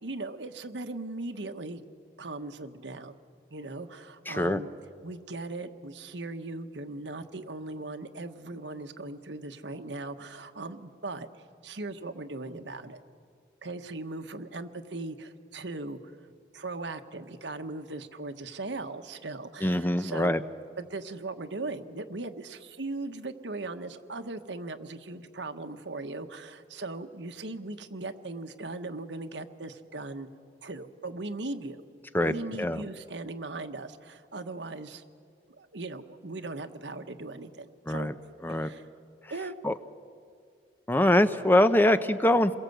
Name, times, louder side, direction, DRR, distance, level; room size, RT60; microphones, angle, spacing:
voice 1, 0.0-1.8 2.2-3.1 3.5-4.7 5.0-13.0 13.6-16.1 16.5-20.3 20.8-30.3 30.6-31.8 32.2-35.0 35.6-38.1 38.6-38.8 39.3-39.5 41.9-42.0, right 2 dB, 85° right, 7 dB, 1.3 m, -38 dB
voice 2, 4.3-4.6 19.6-20.4 32.1-32.8 37.9-38.1 38.4-38.7 39.6-39.8 40.9-42.5, left 1 dB, 10° left, 11 dB, 0.7 m, -23 dB
28.0 x 22.0 x 8.0 m, 2.2 s
head